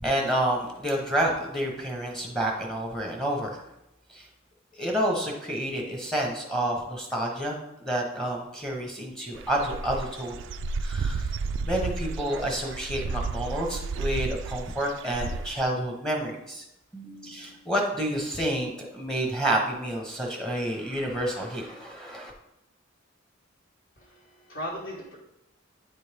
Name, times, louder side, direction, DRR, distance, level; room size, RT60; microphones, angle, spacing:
voice 1, 0.0-3.6 4.1-4.3 4.7-10.4 10.8-11.3 11.6-16.6 16.9-22.3, right 1 dB, 5° left, 0 dB, 0.9 m, -29 dB
Dog / Bird, 9.3-15.6, right 4 dB, 55° right, 0.3 m, -32 dB
voice 2, 24.0-25.2, equal, 50° left, -7 dB, 1.3 m, -37 dB
8.7 x 4.2 x 3.4 m, 0.86 s
head